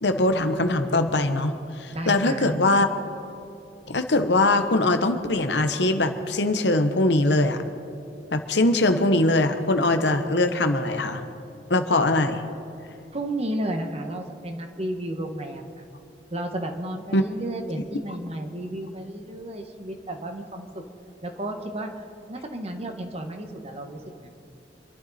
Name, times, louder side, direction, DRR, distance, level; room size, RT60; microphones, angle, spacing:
voice 1, 0.0-2.9 3.9-7.6 8.3-11.2 11.7-12.4 17.1-17.2, left 2 dB, 75° left, 7 dB, 1.2 m, -22 dB
voice 2, 1.9-2.6 13.1-15.8 16.3-20.8 21.2-22.0 22.3-24.3, right 1 dB, 35° right, 4 dB, 1.5 m, -32 dB
26.5 x 11.5 x 4.3 m, 2.7 s
head